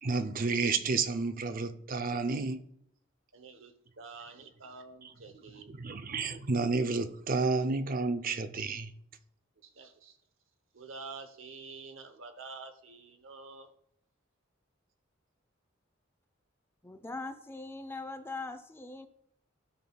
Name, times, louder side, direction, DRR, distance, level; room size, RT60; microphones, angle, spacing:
voice 1, 0.0-2.6 5.7-8.9, right 3 dB, 45° right, 0.5 m, -31 dB
voice 2, 3.3-5.8 9.6-10.2 10.7-13.7, right 4 dB, 80° right, 0.9 m, -48 dB
voice 3, 16.8-19.1, left 3 dB, 10° left, 0.5 m, -41 dB
14.0 x 5.6 x 2.3 m
head